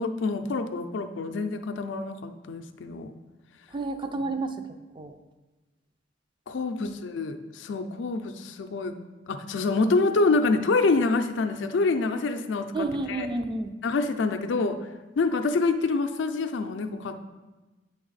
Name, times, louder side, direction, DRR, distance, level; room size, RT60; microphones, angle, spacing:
voice 1, 0.0-3.1 6.5-8.9 9.3-13.3 13.8-14.8 15.2-17.2, left 3 dB, 70° left, 7 dB, 0.4 m, -26 dB
voice 2, 3.7-4.6 5.0-5.2 6.8-7.0 12.7-13.7, right 2 dB, 25° right, 8 dB, 0.4 m, -30 dB
8.7 x 3.5 x 3.9 m, 1.2 s
head